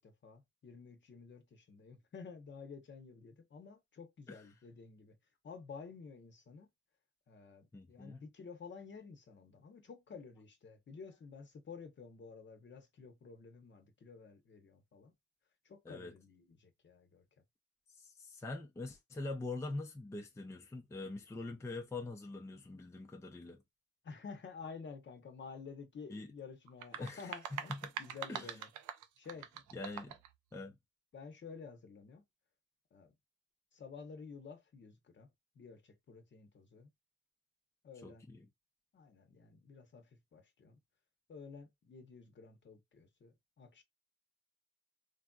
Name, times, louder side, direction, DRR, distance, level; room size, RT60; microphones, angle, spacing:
voice 1, 0.0-5.2 5.4-6.7 7.3-15.1 15.6-17.2 24.0-28.7 29.2-30.0 31.1-32.2 32.9-33.1 33.7-35.3 35.5-36.9 37.8-38.2 38.9-40.8 41.3-43.8, left 5 dB, 40° left, 0.8 m, -52 dB
voice 2, 7.7-8.2 15.8-16.1 17.9-23.6 26.1-26.3 27.0-27.9 28.3-28.5 29.7-30.2 30.5-30.8 38.0-38.5, left 2 dB, 10° left, 0.5 m, -44 dB
sound 1, 26.7-30.3, right 9 dB, 75° right, 0.5 m, -44 dB
3.3 x 2.6 x 2.3 m
cardioid pair, 90°, 30 cm